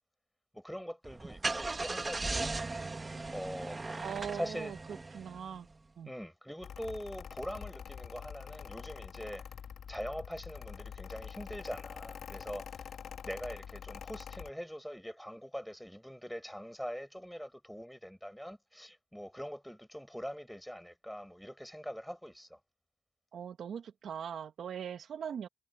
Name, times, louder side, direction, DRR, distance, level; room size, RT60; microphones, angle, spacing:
voice 1, 0.5-2.6 3.3-3.8 4.3-4.7 6.0-9.4 9.9-13.0 13.2-22.6, equal, ahead, 7.7 m, -43 dB
Car / Engine starting, 1.0-5.7, right 3 dB, 20° right, 1.5 m, -37 dB
voice 2, 4.0-4.8 5.1-5.7 6.0-6.1 23.3-25.5, right 8 dB, 60° right, 1.3 m, -40 dB
Mechanical fan, 6.6-14.5, left 8 dB, 60° left, 1.5 m, -46 dB
cardioid pair, 90°, 0 cm